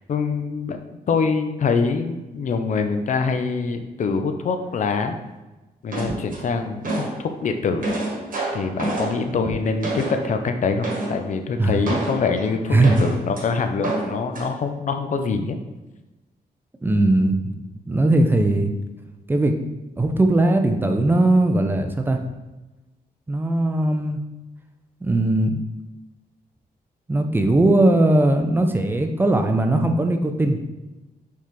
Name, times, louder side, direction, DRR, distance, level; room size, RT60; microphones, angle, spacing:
voice 1, 0.1-0.8 1.1-5.2 5.8-7.9 8.5-15.6, left 5 dB, 50° left, 7 dB, 0.4 m, -24 dB
sound 1, 5.9-7.2 7.6-10.4 10.8-11.2 11.8-13.4 13.8-14.5, right 2 dB, 55° right, 1.2 m, -28 dB
voice 2, 12.7-13.1 16.8-17.6 17.9-18.7 19.3-19.6 20.0-22.2 23.3-24.2 25.0-25.6 27.1-30.6, right 2 dB, 15° right, 5 dB, 0.4 m, -19 dB
4.6 x 3.5 x 3.1 m, 1.1 s
wide cardioid pair, 135°, 16 cm